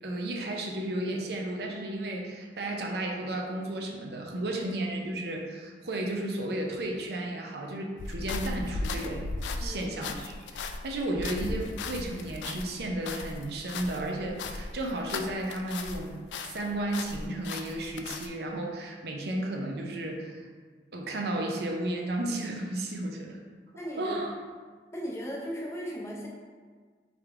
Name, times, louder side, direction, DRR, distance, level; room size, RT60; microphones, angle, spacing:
voice 1, 0.0-9.2 9.6-16.1 16.4-20.5 20.9-23.4 24.0-24.3, right 1 dB, 65° right, 0 dB, 0.5 m, -33 dB
sound 1, 8.0-16.1 16.3-18.3, left 3 dB, 80° left, 0.3 m, -37 dB
voice 2, 23.8-24.2 24.9-26.3, equal, 15° left, -3 dB, 0.6 m, -36 dB
3.7 x 3.5 x 3.3 m, 1.5 s
head